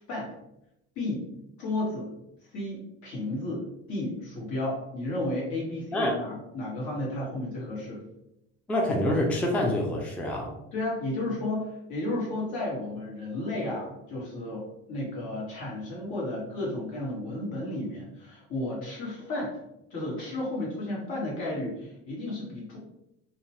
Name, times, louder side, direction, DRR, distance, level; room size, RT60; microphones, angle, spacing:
voice 1, 0.9-1.3 1.6-2.1 2.5-8.0 10.7-14.6 14.9-19.6 19.9-22.8, left 1 dB, 70° left, -5 dB, 1.5 m, -33 dB
voice 2, 8.7-10.5, left 1 dB, 5° left, 0 dB, 0.4 m, -26 dB
2.7 x 2.2 x 2.9 m, 0.84 s
cardioid pair, 115°, 31 cm